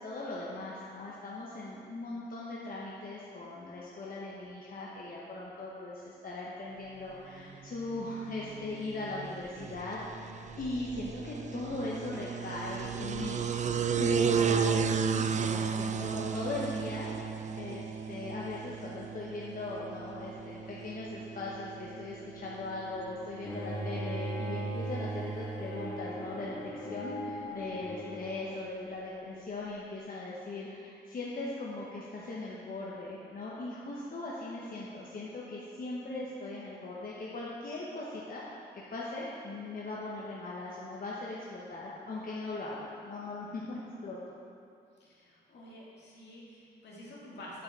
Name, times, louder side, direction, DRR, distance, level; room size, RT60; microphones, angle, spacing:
voice 1, 0.0-10.3 10.6-13.4 14.0-38.4 38.7-44.4, left 2 dB, 55° left, -6 dB, 1.0 m, -39 dB
sound 1, 7.4-25.4, right 6 dB, 40° right, 0.4 m, -34 dB
Bowed string instrument, 23.4-28.5, right 1 dB, 25° left, 1.7 m, -38 dB
voice 2, 45.0-47.6, left 1 dB, 75° left, -5 dB, 1.9 m, -49 dB
8.4 x 4.6 x 4.7 m, 2.5 s
cardioid pair, 75°, 18 cm